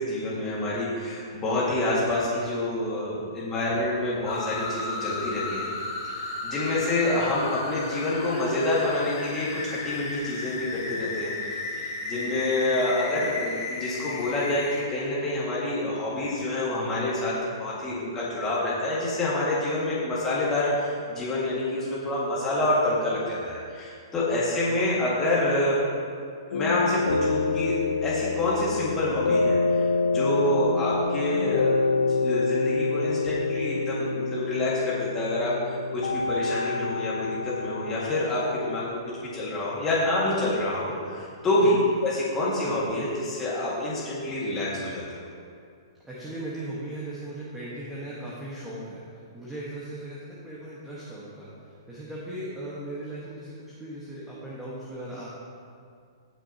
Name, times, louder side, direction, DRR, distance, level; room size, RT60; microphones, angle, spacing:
voice 1, 0.0-5.7 6.2-11.3 11.8-25.8 26.5-27.8 28.0-31.8 32.1-45.3, left 1 dB, 15° left, -8 dB, 1.8 m, -27 dB
sound 1, 4.3-14.8, left 3 dB, 50° left, 2.5 m, -35 dB
sound 2, 26.5-38.9, left 4 dB, 75° left, 0.7 m, -27 dB
voice 2, 46.0-55.3, right 1 dB, 5° right, -8 dB, 1.3 m, -38 dB
17.0 x 6.1 x 2.8 m, 2.3 s
hypercardioid pair, 160°, 2 cm